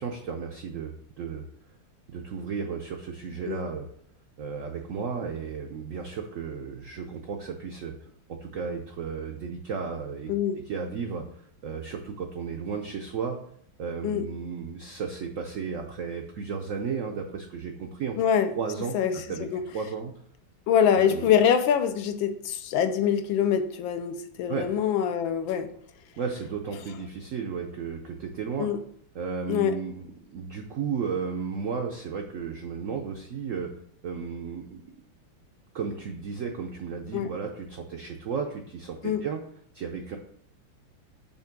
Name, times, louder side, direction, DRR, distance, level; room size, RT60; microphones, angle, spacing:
voice 1, 0.0-1.4 2.1-3.9 4.4-7.9 8.3-10.3 10.7-11.2 11.6-13.4 13.8-18.2 18.6-19.0 19.3-19.5 19.7-20.1 21.0-21.3 24.5-24.7 26.2-28.7 29.1-33.7 34.0-34.9 35.7-39.4 39.7-40.2, right 6 dB, 75° right, 3 dB, 0.7 m, -34 dB
voice 2, 10.3-10.6 14.0-14.3 18.2-18.5 18.9-19.6 20.7-25.7 28.6-28.8 29.5-29.7 37.1-37.3 39.0-39.2, left 8 dB, 85° left, 9 dB, 1.4 m, -24 dB
6.9 x 2.9 x 5.8 m, 0.65 s
omnidirectional pair, 2.1 m